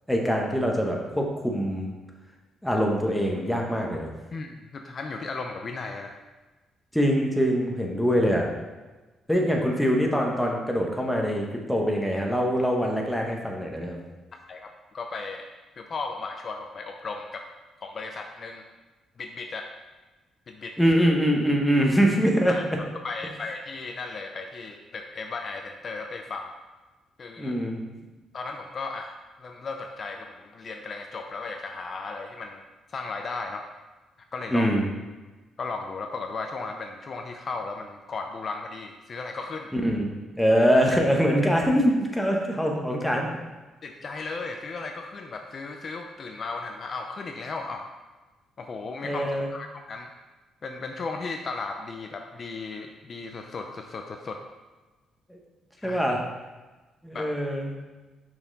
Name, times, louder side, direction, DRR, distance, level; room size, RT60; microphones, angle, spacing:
voice 1, 0.1-1.9 2.6-4.1 6.9-8.5 9.3-14.0 20.8-22.6 27.4-27.8 34.5-34.9 39.7-40.1 40.4-43.3 49.0-49.5 55.3-55.4 55.8-56.2 57.0-57.8, equal, 5° left, 0 dB, 1.1 m, -23 dB
voice 2, 4.3-6.2 14.5-15.5 15.8-17.5 17.8-18.6 19.2-19.7 20.5-20.7 22.5-22.6 23.0-26.5 27.2-27.6 28.3-33.6 34.3-34.7 35.6-39.7 43.8-47.9 48.6-49.2 49.5-50.1 50.6-54.4 55.8-56.0 57.1-57.3, left 4 dB, 45° left, 4 dB, 0.4 m, -35 dB
5.7 x 4.4 x 4.0 m, 1.2 s
cardioid pair, 90°, 0 cm